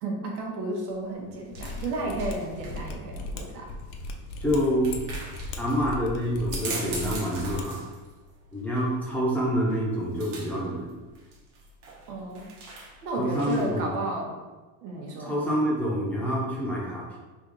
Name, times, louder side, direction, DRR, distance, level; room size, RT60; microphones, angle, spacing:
voice 1, 0.0-3.7 12.1-12.5 13.0-14.3 14.8-15.3, right 2 dB, 85° right, 0 dB, 1.2 m, -32 dB
sound 1, 0.9-13.9, right 3 dB, 70° right, 1.2 m, -42 dB
Mechanisms, 1.5-7.6 7.9-8.0, left 2 dB, 60° left, 0.7 m, -37 dB
voice 2, 4.4-5.0 5.6-7.8 8.5-11.0 13.1-13.9 15.2-17.2, equal, 5° left, -6 dB, 0.7 m, -27 dB
3.4 x 2.8 x 3.9 m, 1.2 s
supercardioid pair, 135°, 45 cm